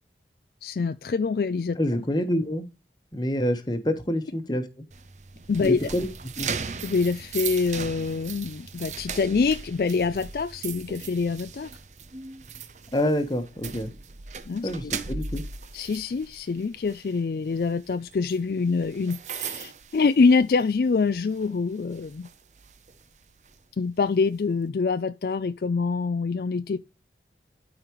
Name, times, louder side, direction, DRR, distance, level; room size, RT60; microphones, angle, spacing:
voice 1, 0.6-1.8 5.5-5.9 6.8-11.7 14.5-14.9 15.7-22.3 23.8-26.8, left 4 dB, 55° left, 0.4 m, -25 dB
voice 2, 1.8-2.6 3.1-4.8 5.6-6.1 6.4-6.5 12.9-13.9 14.6-15.4, equal, 25° left, 1.2 m, -27 dB
sound 1, 4.9-20.8 21.2-21.4 21.9-23.6, right 5 dB, 40° right, 0.7 m, -38 dB
12.5 x 5.0 x 3.1 m
head